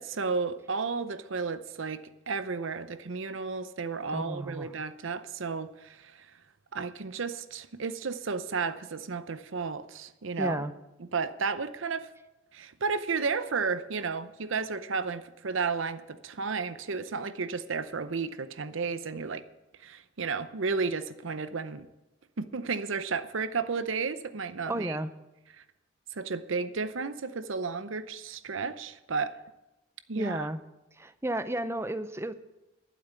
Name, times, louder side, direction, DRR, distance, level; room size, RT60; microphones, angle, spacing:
voice 1, 0.0-6.3 6.7-10.6 11.0-12.1 12.5-19.4 19.8-21.9 22.4-25.0 26.1-29.3 30.1-30.5, right 4 dB, 65° right, 12 dB, 0.7 m, -33 dB
voice 2, 4.1-4.7 10.4-10.7 24.7-25.1 30.1-30.6 30.9-32.3, right 1 dB, 10° right, 12 dB, 0.6 m, -32 dB
12.5 x 7.7 x 8.1 m, 0.99 s
head